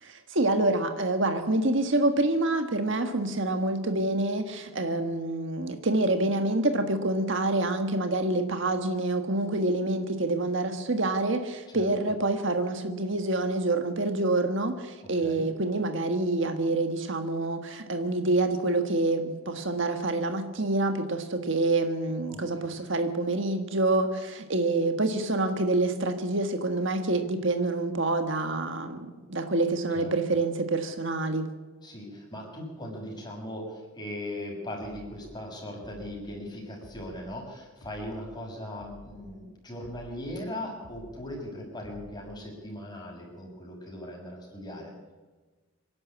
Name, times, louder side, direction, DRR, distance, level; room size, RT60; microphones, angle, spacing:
voice 1, 0.0-31.5, right 2 dB, 60° right, 7 dB, 1.6 m, -27 dB
voice 2, 31.8-44.9, left 1 dB, 20° left, 0 dB, 6.2 m, -39 dB
sound 1, 34.8-35.2 35.8-36.2 36.8-37.2 37.8-38.2 38.8-39.2 39.8-40.2 40.8-41.2 41.8-42.2, equal, 80° left, 3.0 m, -51 dB
26.0 x 11.5 x 8.6 m, 1.3 s
head